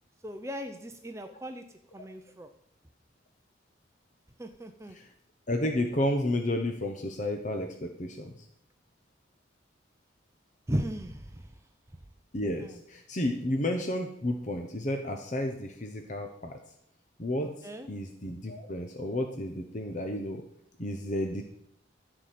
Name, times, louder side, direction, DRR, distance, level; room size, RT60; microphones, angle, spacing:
voice 1, 0.2-1.6 1.9-2.5 4.4-5.0 10.7-11.5 12.6-12.8 17.6-17.9, equal, 15° right, 6 dB, 0.6 m, -36 dB
voice 2, 5.5-8.3 12.3-16.6 17.2-17.5 17.9-20.4 20.8-21.4, left 1 dB, 40° left, 4 dB, 0.9 m, -31 dB
14.5 x 4.9 x 7.6 m, 0.71 s
head